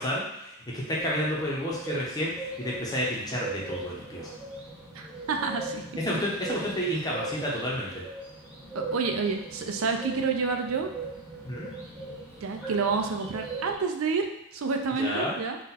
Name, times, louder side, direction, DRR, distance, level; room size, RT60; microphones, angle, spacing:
voice 1, 0.0-4.3 6.0-8.0 11.4-11.7 14.9-15.3, equal, 15° left, -5 dB, 0.9 m, -30 dB
sound 1, 1.0-13.7, right 2 dB, 5° right, 1.1 m, -40 dB
voice 2, 5.0-6.2 8.7-10.9 12.4-14.3 14.5-15.6, right 4 dB, 75° right, 4 dB, 0.5 m, -29 dB
4.1 x 2.5 x 4.1 m, 0.87 s
head